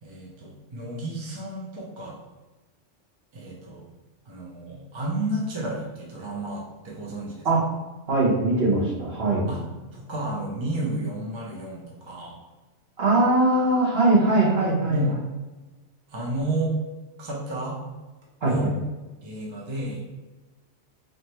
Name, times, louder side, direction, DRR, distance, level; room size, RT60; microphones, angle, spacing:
voice 1, 0.0-2.2 3.3-3.8 4.3-7.5 9.5-9.6 9.9-12.4 14.9-15.2 16.1-16.7 17.2-17.8 18.4-18.7 19.2-20.0, right 1 dB, 30° right, -4 dB, 0.7 m, -31 dB
voice 2, 8.1-9.5 13.0-15.0 18.4-18.5, right 2 dB, 60° right, -7 dB, 1.6 m, -21 dB
4.2 x 2.9 x 3.2 m, 1.2 s
omnidirectional pair, 1.2 m